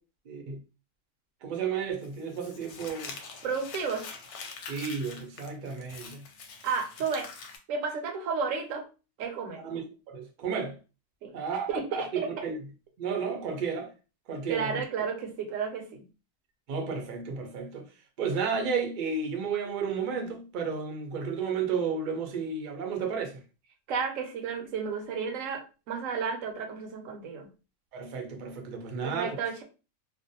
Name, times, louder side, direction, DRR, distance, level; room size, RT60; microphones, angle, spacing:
voice 1, 0.3-0.6 1.4-3.2 4.7-6.2 9.6-10.8 11.3-12.6 13.0-13.9 14.3-14.8 16.7-17.9 18.2-23.4 27.9-29.4, right 5 dB, 55° right, 0.5 m, -32 dB
Crumpling crinkling, 2.0-7.6, left 5 dB, 70° left, 0.8 m, -44 dB
voice 2, 3.4-4.1 6.6-7.3 7.7-8.9 9.2-9.6 11.2-11.3 11.7-12.1 14.5-16.1 23.9-27.5 29.0-29.6, right 5 dB, 80° right, 0.9 m, -32 dB
2.5 x 2.0 x 2.6 m
omnidirectional pair, 1.4 m